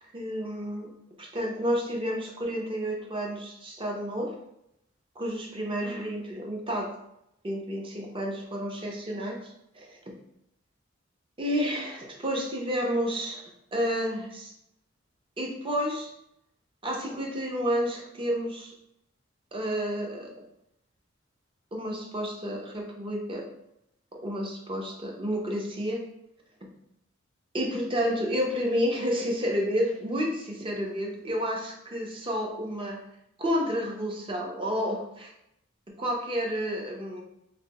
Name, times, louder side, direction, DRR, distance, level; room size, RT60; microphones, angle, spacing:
voice 1, 0.1-0.9 1.2-4.3 5.2-6.9 7.4-10.1 11.4-14.5 15.4-16.1 16.8-18.7 19.5-20.3 21.7-23.4 24.1-26.0 27.5-33.0 33.4-35.3 36.0-37.2, equal, 25° right, 1 dB, 0.6 m, -30 dB
3.3 x 2.9 x 2.9 m, 0.80 s
head